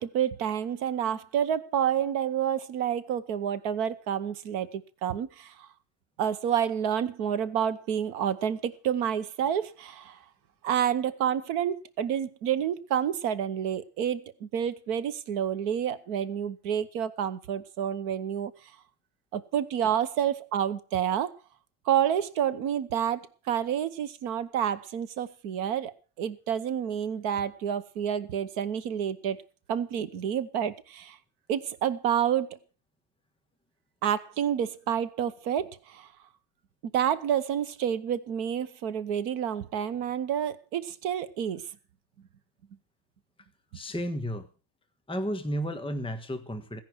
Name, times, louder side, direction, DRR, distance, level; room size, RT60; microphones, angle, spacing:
voice 1, 0.0-5.7 6.2-10.2 10.6-18.5 19.3-21.3 21.9-29.4 29.7-31.2 31.5-32.6 34.0-36.1 36.9-41.7, right 9 dB, 90° right, 1.5 m, -29 dB
voice 2, 43.7-44.5 45.1-46.8, equal, 5° left, 1.2 m, -32 dB
16.0 x 10.5 x 6.2 m
omnidirectional pair, 1.6 m